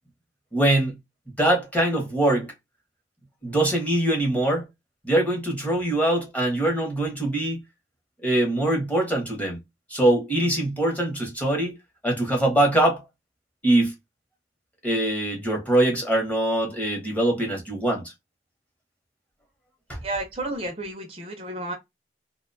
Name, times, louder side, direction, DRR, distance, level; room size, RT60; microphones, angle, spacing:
voice 1, 0.5-1.0 1.4-2.5 3.4-4.6 5.0-7.6 8.2-9.6 9.9-11.8 12.0-13.0 13.6-13.9 14.8-18.1 19.9-20.0, right 1 dB, 10° left, 0.8 m, -23 dB
voice 2, 20.0-21.7, right 2 dB, 30° right, 0.5 m, -31 dB
2.4 x 2.2 x 2.5 m
head